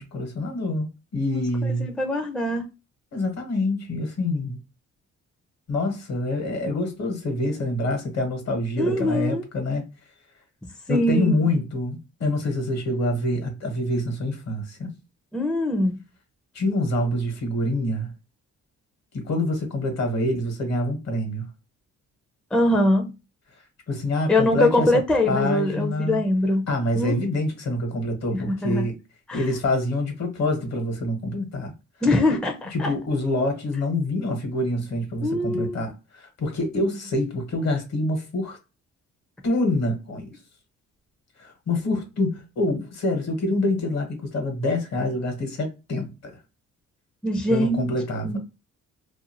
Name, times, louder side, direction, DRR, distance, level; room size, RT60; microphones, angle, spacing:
voice 1, 0.0-1.9 3.1-4.6 5.7-9.8 10.9-15.0 16.5-18.1 19.1-21.5 23.9-24.9 25.3-26.2 26.7-29.0 29.3-31.7 32.7-38.6 39.4-40.3 41.4-46.3 47.5-48.4, left 1 dB, 60° left, 1.2 m, -26 dB
voice 2, 1.8-2.6 8.8-9.4 10.9-11.6 15.3-16.0 22.5-23.1 24.3-26.6 26.9-27.3 28.3-28.8 29.3-29.4 32.0-32.9 35.2-35.8 47.2-47.9 48.2-48.4, left 1 dB, 5° left, 0.5 m, -23 dB
2.6 x 2.3 x 2.7 m
cardioid pair, 90°, 30 cm